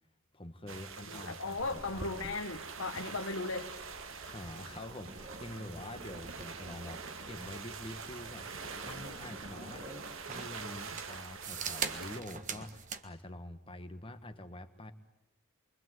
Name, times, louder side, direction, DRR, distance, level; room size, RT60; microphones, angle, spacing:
voice 1, 0.3-2.7 4.2-7.0 7.3-8.5 8.8-14.9, left 1 dB, 25° left, 8 dB, 1.6 m, -46 dB
sound 1, 0.7-12.2, right 5 dB, 65° right, 1.9 m, -45 dB
voice 2, 1.1-3.7, left 3 dB, 65° left, 3 dB, 1.4 m, -37 dB
sound 2, 1.6-13.1, right 5 dB, 35° right, 1.5 m, -45 dB
28.5 x 23.5 x 8.0 m, 0.84 s
head